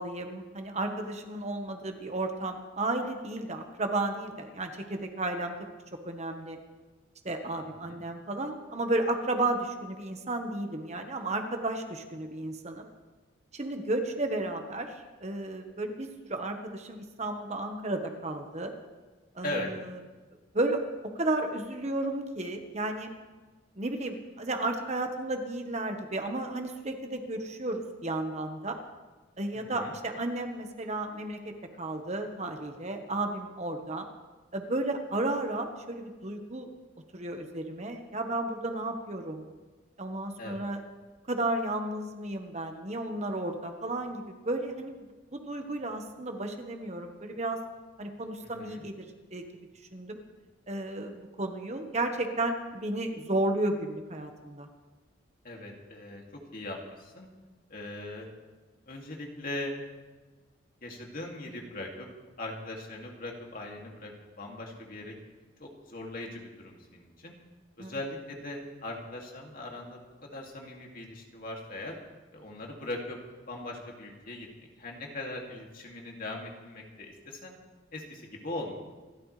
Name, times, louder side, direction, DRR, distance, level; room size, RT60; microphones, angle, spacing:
voice 1, 0.0-5.7 6.0-6.6 7.2-12.9 13.5-18.7 19.3-20.0 20.5-20.8 21.2-23.1 23.8-28.8 29.4-34.0 34.5-36.7 37.1-39.5 40.0-40.8 41.3-45.0 45.3-47.6 48.0-49.0 49.3-49.4 49.9-50.2 50.7-54.7 67.8-67.9, right 2 dB, 35° right, 5 dB, 1.2 m, -33 dB
voice 2, 29.5-30.0 40.4-40.6 48.4-48.8 55.4-56.2 56.5-57.3 57.7-58.3 58.9-59.7 60.8-62.1 62.4-64.1 64.4-65.1 65.6-67.3 67.8-71.9 72.3-73.2 73.5-74.5 74.8-77.5 77.9-78.8, left 2 dB, 45° left, 0 dB, 2.5 m, -40 dB
27.0 x 13.0 x 3.3 m, 1.3 s
head